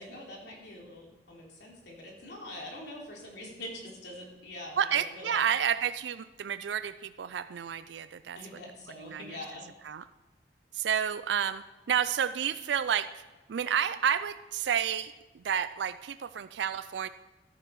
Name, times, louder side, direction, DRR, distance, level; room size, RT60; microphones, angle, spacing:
voice 1, 0.0-5.5 8.3-9.6, left 1 dB, 70° left, -2 dB, 3.3 m, -44 dB
voice 2, 4.8-8.4 9.0-9.4 9.8-10.0 10.7-13.2 13.5-17.1, right 8 dB, 75° right, 13 dB, 0.4 m, -30 dB
14.0 x 9.0 x 4.6 m, 1.2 s
head